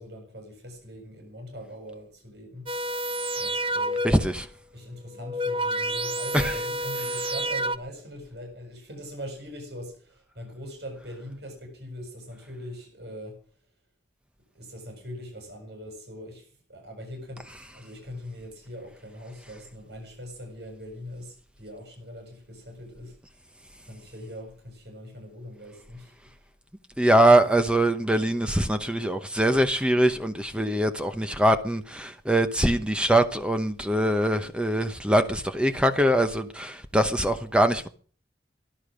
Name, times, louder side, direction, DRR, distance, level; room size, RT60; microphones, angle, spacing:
voice 1, 0.0-2.7 3.4-4.0 4.7-13.4 14.5-23.2 23.9-26.1, equal, 70° right, 7.4 m, -41 dB
sound 1, 2.7-4.4 5.1-7.8, right 1 dB, 30° right, 1.1 m, -29 dB
voice 2, 4.0-4.5 6.4-6.5 27.0-37.9, right 1 dB, 5° right, 0.9 m, -23 dB
17.5 x 12.0 x 6.4 m
head